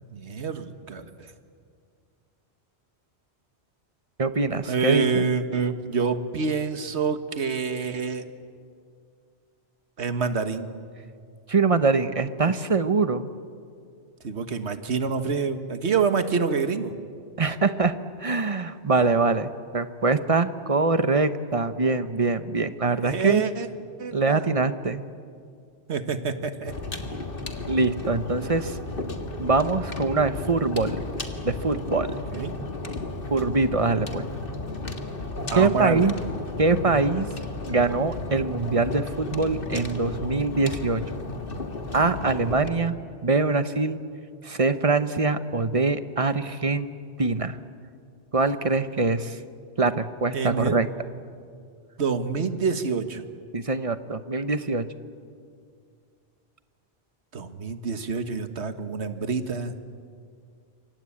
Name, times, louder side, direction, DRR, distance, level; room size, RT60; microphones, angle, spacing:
voice 1, 0.1-1.3 4.6-8.2 10.0-10.7 14.2-16.9 22.9-23.7 24.0-24.5 25.9-26.7 32.3-32.5 35.5-36.0 50.3-50.8 52.0-53.2 57.3-59.7, right 5 dB, 80° right, 9 dB, 1.7 m, -27 dB
voice 2, 4.2-5.2 11.5-13.3 17.4-23.4 24.1-25.0 27.7-28.8 29.4-31.0 31.4-32.1 33.3-34.3 35.6-36.1 36.6-37.3 37.7-41.0 41.9-43.0 43.2-44.0 44.4-47.6 48.3-49.4 49.8-50.9 53.5-54.9, right 3 dB, 35° right, 11 dB, 1.0 m, -23 dB
sound 1, 26.6-42.7, left 2 dB, 55° left, 2.0 m, -34 dB
27.0 x 24.5 x 8.6 m, 2.3 s
omnidirectional pair, 1.1 m